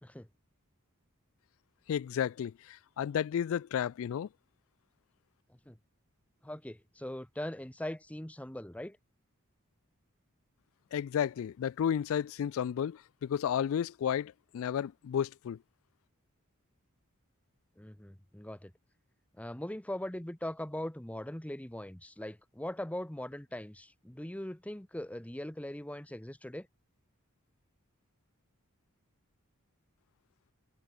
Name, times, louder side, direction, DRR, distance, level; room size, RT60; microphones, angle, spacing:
voice 1, 1.9-4.3 10.9-15.6, left 9 dB, 70° left, 0.3 m, -32 dB
voice 2, 6.4-9.0 17.8-18.7 19.4-26.7, left 1 dB, 5° left, 0.9 m, -40 dB
head